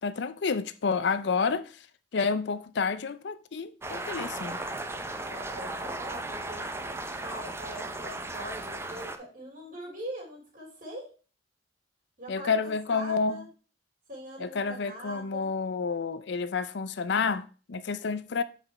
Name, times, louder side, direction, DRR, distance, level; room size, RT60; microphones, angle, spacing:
voice 1, 0.0-1.8 2.1-4.6 12.3-13.4 14.4-18.4, left 5 dB, 65° left, 0.5 m, -29 dB
sound 1, 3.8-9.2, right 2 dB, 15° right, 0.5 m, -36 dB
voice 2, 5.3-11.1 12.2-13.5 14.1-15.5 18.3-18.4, equal, 45° right, 2.9 m, -43 dB
7.3 x 5.0 x 4.2 m
head